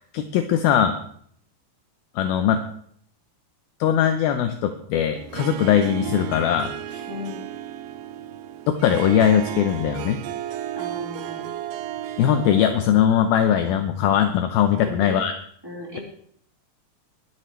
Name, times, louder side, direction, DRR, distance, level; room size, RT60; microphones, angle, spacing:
voice 1, 0.1-1.0 2.2-2.6 3.8-7.0 8.7-10.2 12.2-15.3, left 9 dB, 75° left, 7 dB, 2.6 m, -20 dB
Harp, 5.1-13.0, right 11 dB, 80° right, 2.4 m, -33 dB
voice 2, 7.1-7.5 10.7-11.5 14.8-15.2 15.6-16.0, left 2 dB, 5° right, -3 dB, 3.9 m, -36 dB
23.5 x 11.5 x 3.3 m, 0.62 s
omnidirectional pair, 4.6 m